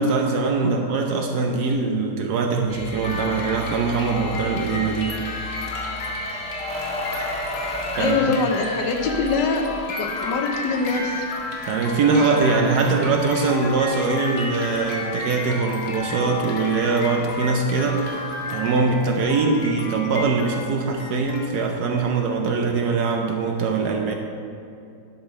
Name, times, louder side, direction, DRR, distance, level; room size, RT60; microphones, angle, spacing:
voice 1, 0.0-5.2 8.0-8.2 11.7-18.2 18.5-24.1, right 4 dB, 70° right, 3 dB, 1.1 m, -22 dB
sound 1, 2.7-17.7 18.2-18.3, equal, 5° left, 0.7 m, -37 dB
sound 2, 3.0-21.5, left 3 dB, 45° left, 0.9 m, -32 dB
voice 2, 8.0-11.2, left 4 dB, 70° left, 3 dB, 1.3 m, -24 dB
10.5 x 5.1 x 4.2 m, 2.5 s
omnidirectional pair, 2.1 m